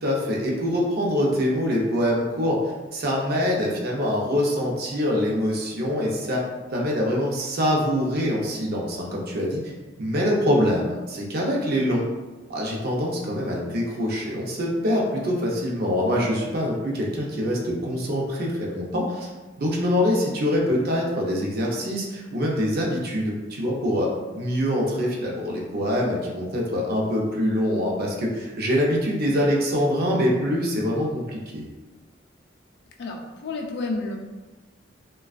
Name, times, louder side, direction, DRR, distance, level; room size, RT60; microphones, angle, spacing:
voice 1, 0.0-2.6 2.9-6.4 6.7-9.7 10.0-12.1 12.5-19.3 19.6-24.1 24.3-31.7, equal, 55° right, -2 dB, 0.5 m, -24 dB
voice 2, 33.0-34.2, left 3 dB, 60° left, 1 dB, 0.4 m, -30 dB
2.4 x 2.2 x 2.4 m, 1.2 s
head